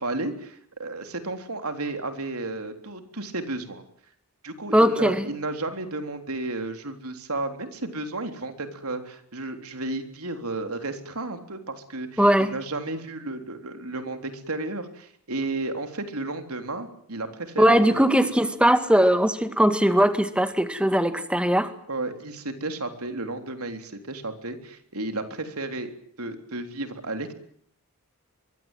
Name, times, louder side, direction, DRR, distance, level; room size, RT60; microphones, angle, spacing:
voice 1, 0.0-3.8 4.4-18.1 21.9-25.9 26.2-27.3, right 2 dB, 90° right, 7 dB, 3.7 m, -33 dB
voice 2, 4.7-5.3 12.2-12.5 17.6-21.7, equal, 5° right, 9 dB, 2.0 m, -20 dB
24.5 x 23.0 x 9.2 m, 0.65 s
head